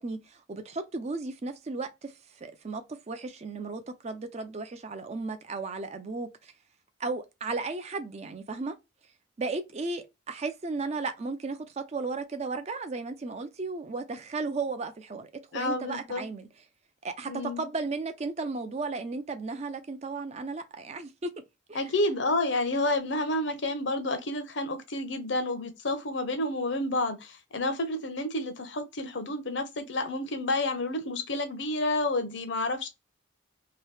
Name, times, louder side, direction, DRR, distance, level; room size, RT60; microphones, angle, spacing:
voice 1, 0.0-2.1 2.4-6.5 7.0-8.8 9.4-16.5 17.0-21.3 21.7-21.9, right 3 dB, 35° right, 0.4 m, -35 dB
voice 2, 15.5-16.2 17.3-17.6 21.7-32.9, left 2 dB, 60° left, 0.7 m, -30 dB
2.9 x 2.7 x 3.2 m
head